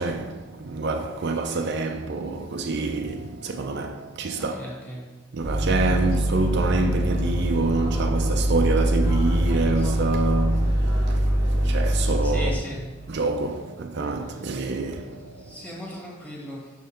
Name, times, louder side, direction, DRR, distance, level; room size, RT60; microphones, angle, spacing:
voice 1, 0.0-4.6 5.3-12.8 13.1-15.7, right 3 dB, 55° right, 0.5 m, -27 dB
voice 2, 4.4-5.1 12.2-12.9 15.5-16.7, equal, 5° left, 1.6 m, -37 dB
sound 1, 5.4-12.5, equal, 80° left, 2.0 m, -23 dB
6.2 x 5.6 x 4.4 m
head